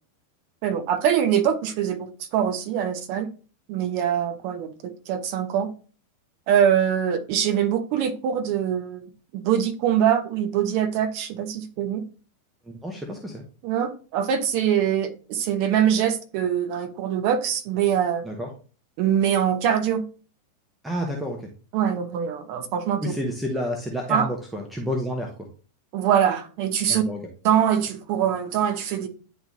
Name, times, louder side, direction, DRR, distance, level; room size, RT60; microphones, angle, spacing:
voice 1, 0.6-3.3 3.7-5.7 6.5-12.0 13.6-18.3 19.0-20.0 21.7-23.1 24.1-24.3 25.9-27.0 27.4-29.1, right 9 dB, 45° right, 1.0 m, -23 dB
voice 2, 12.7-13.4 18.2-18.5 20.8-21.5 23.0-25.3 26.9-27.2, equal, 5° right, 1.0 m, -30 dB
10.0 x 3.4 x 2.7 m
figure-of-eight pair, 90°, 0 cm